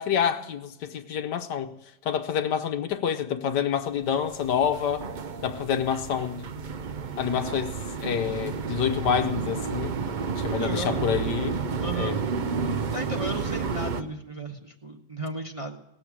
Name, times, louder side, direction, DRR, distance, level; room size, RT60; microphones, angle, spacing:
voice 1, 0.0-1.7 2.0-5.1 5.4-6.5 7.2-7.7 8.0-9.9 10.4-11.6 12.0-12.2, left 8 dB, 80° left, 1.5 m, -27 dB
sound 1, 4.0-14.0, right 5 dB, 80° right, 0.4 m, -31 dB
voice 2, 10.5-11.0 11.8-12.2 12.9-15.8, right 1 dB, 25° right, 1.0 m, -35 dB
18.0 x 7.8 x 9.9 m
omnidirectional pair, 1.8 m